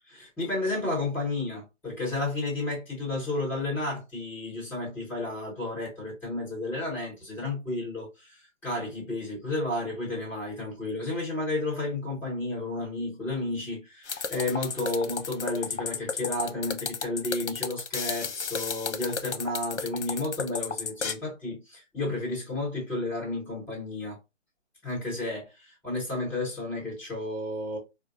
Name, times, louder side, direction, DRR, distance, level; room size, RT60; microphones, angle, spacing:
voice 1, 0.1-24.2 24.8-27.8, left 2 dB, 5° left, 1.2 m, -32 dB
sound 1, 14.1-21.1, left 5 dB, 65° left, 0.7 m, -33 dB
4.8 x 2.0 x 2.5 m
figure-of-eight pair, 140°, 38 cm